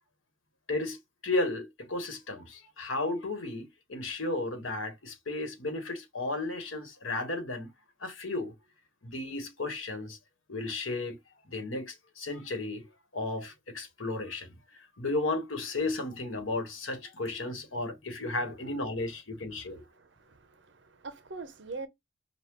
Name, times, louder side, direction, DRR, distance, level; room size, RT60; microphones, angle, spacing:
voice 1, 1.2-7.7 8.0-8.5 9.0-10.2 10.5-11.2 11.5-12.8 13.1-14.5 15.0-19.8, left 2 dB, 85° left, 1.3 m, -34 dB
voice 2, 19.9-21.9, right 3 dB, 65° right, 0.7 m, -43 dB
5.5 x 2.3 x 3.0 m
head